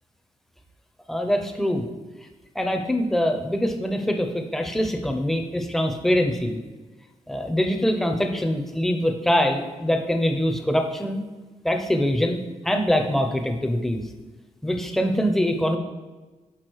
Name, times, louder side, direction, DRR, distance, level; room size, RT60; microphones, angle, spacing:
voice 1, 1.1-1.8 2.6-6.6 7.3-11.2 11.6-14.0 14.6-15.8, equal, ahead, 4 dB, 0.6 m, -23 dB
6.2 x 4.8 x 4.6 m, 1.2 s
wide cardioid pair, 145°, 12 cm